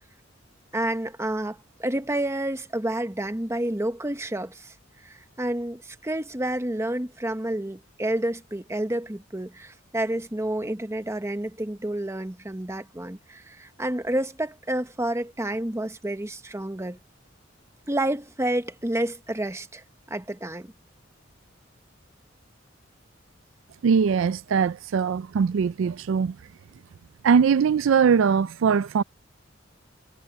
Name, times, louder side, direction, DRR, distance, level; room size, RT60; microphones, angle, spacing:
voice 1, 0.7-4.7 5.0-17.0 17.9-20.7, right 1 dB, 15° right, 1.1 m, -29 dB
voice 2, 23.8-26.4 27.2-29.0, right 6 dB, 75° right, 0.4 m, -21 dB
head